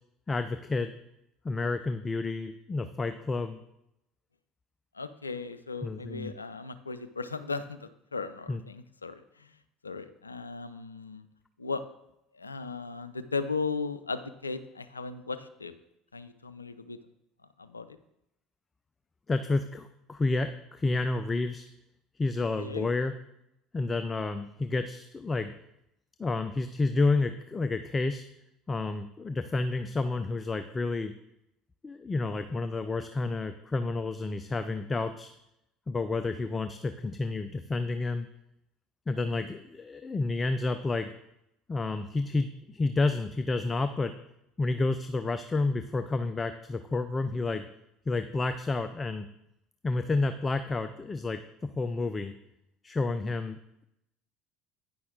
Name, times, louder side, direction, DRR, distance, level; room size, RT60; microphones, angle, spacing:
voice 1, 0.3-0.9 1.4-3.6 5.8-6.4 8.5-8.6 19.3-21.7 22.2-23.1 23.7-25.5 26.2-28.2 28.7-31.1 31.8-35.3 35.9-38.3 39.1-41.1 41.7-44.2 44.6-47.7 48.1-49.3 49.8-51.4 51.8-52.3 52.8-53.6, left 3 dB, 20° left, 10 dB, 0.4 m, -30 dB
voice 2, 4.9-9.6 9.8-11.3 11.6-11.8 12.3-15.7 16.1-17.0 17.6-18.0 22.6-22.9, left 4 dB, 85° left, 12 dB, 0.3 m, -37 dB
9.3 x 5.9 x 3.7 m, 0.84 s
figure-of-eight pair, 65°, 0 cm